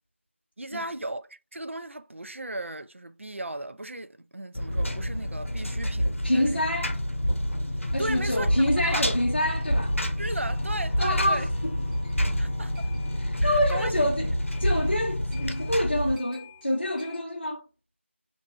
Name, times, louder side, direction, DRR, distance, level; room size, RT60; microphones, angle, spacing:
voice 1, 0.6-6.1 6.3-6.7 8.0-9.1 10.2-11.5 12.4-12.9 13.4-14.3, right 2 dB, 75° right, 0.4 m, -36 dB
Engine, 4.5-16.2, equal, 90° left, 0.7 m, -28 dB
voice 2, 6.2-7.0 7.9-9.9 11.0-11.5 13.2-14.3 14.6-17.6, left 1 dB, 50° left, 0.5 m, -27 dB
sound 1, 8.4-17.2, left 4 dB, 15° left, 1.0 m, -50 dB
2.7 x 2.6 x 2.2 m
figure-of-eight pair, 180°, 7 cm